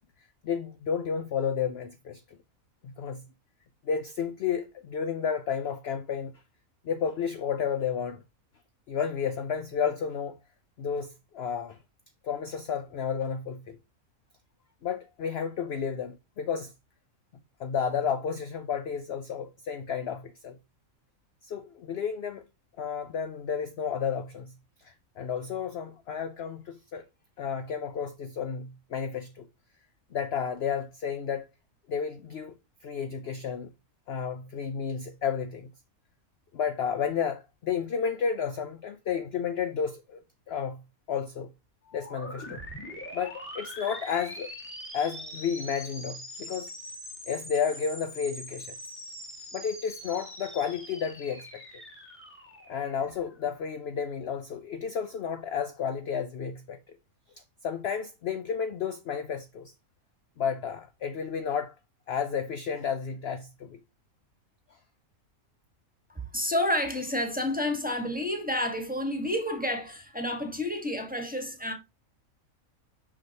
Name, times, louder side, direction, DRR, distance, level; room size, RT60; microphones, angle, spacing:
voice 1, 0.4-2.2 2.8-3.2 3.8-6.3 6.8-8.2 8.9-10.3 10.8-11.8 12.2-13.8 14.8-16.7 17.6-20.6 21.4-22.4 22.8-24.5 24.8-27.0 27.4-29.5 30.1-31.5 31.9-32.5 32.8-33.7 34.1-35.7 36.5-40.2 40.5-40.8 41.1-41.5 41.9-42.6 43.1-44.5 44.9-46.7 47.3-48.7 49.5-51.6 52.7-57.0 57.6-59.7 60.4-61.7 62.1-63.8, left 7 dB, 60° left, 0.7 m, -32 dB
sound 1, 41.8-53.5, equal, 10° left, 1.6 m, -43 dB
voice 2, 66.1-71.7, left 1 dB, 5° right, 1.3 m, -30 dB
6.3 x 5.8 x 2.8 m
omnidirectional pair, 1.5 m